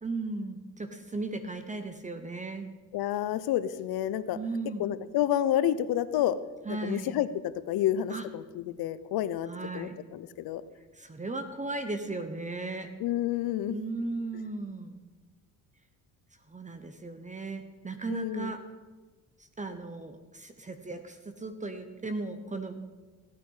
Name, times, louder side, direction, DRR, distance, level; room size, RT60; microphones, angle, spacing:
voice 1, 0.0-2.7 4.3-4.9 6.6-7.2 8.1-8.3 9.5-10.0 10.9-12.9 13.7-15.0 16.5-18.6 19.4-22.8, right 3 dB, 20° right, 8 dB, 1.0 m, -36 dB
voice 2, 2.9-4.4 4.8-6.4 6.7-7.3 7.7-9.5 9.7-10.6 13.0-13.8 18.1-18.5, left 11 dB, 80° left, 15 dB, 0.8 m, -29 dB
16.0 x 9.3 x 5.6 m, 1.3 s
cardioid pair, 105°, 36 cm